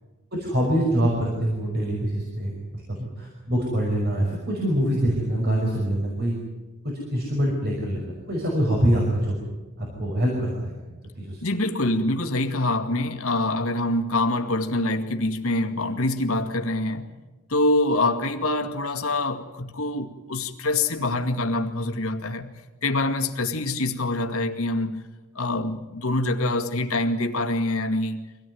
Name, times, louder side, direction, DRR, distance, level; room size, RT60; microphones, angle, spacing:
voice 1, 0.3-6.4 6.8-9.4 9.8-10.8 11.2-11.4, equal, 45° right, -1 dB, 5.4 m, -25 dB
voice 2, 11.4-17.1 17.5-22.5 22.8-25.0 25.4-28.2, left 2 dB, 70° left, 5 dB, 2.1 m, -25 dB
25.0 x 17.5 x 9.4 m, 1.2 s
head